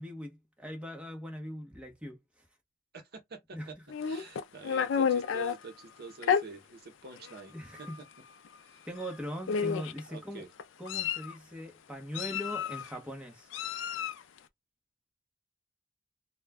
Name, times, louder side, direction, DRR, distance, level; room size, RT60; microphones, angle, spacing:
voice 1, 0.0-2.2 3.5-3.7 7.5-8.0 8.8-10.4 10.8-13.5, equal, 5° right, 0.8 m, -40 dB
voice 2, 2.9-3.8 4.0-7.9 8.6-8.8 10.1-10.5, right 3 dB, 55° right, 0.7 m, -47 dB
Meow, 3.9-5.6 6.2-6.4 7.3-7.4 7.8-8.0 9.0-9.1 9.5-10.0 10.6-11.3 12.1-12.9 13.5-14.2, left 7 dB, 75° left, 0.4 m, -30 dB
2.3 x 2.1 x 3.4 m
head